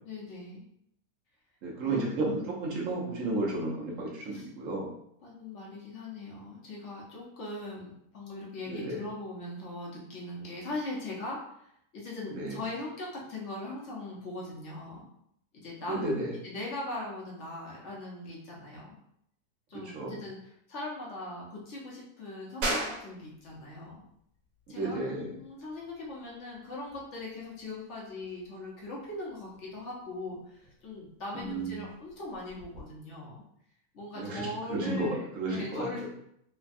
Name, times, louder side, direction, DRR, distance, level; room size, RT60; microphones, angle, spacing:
voice 1, 0.0-0.6 1.8-2.4 4.3-4.5 5.2-15.1 15.6-16.2 16.4-19.0 19.7-24.0 24.7-33.4 33.9-35.2 35.5-36.1, left 2 dB, 55° left, -4 dB, 0.8 m, -40 dB
voice 2, 1.6-4.9 8.7-9.0 12.4-12.6 15.9-16.3 19.9-20.2 24.8-25.3 31.3-31.8 34.2-34.4 34.7-35.1 35.3-35.8, right 2 dB, 60° right, -2 dB, 0.9 m, -32 dB
sound 1, 22.6-32.8, right 1 dB, 80° right, 1.3 m, -41 dB
3.2 x 2.2 x 2.5 m, 0.73 s
omnidirectional pair, 1.9 m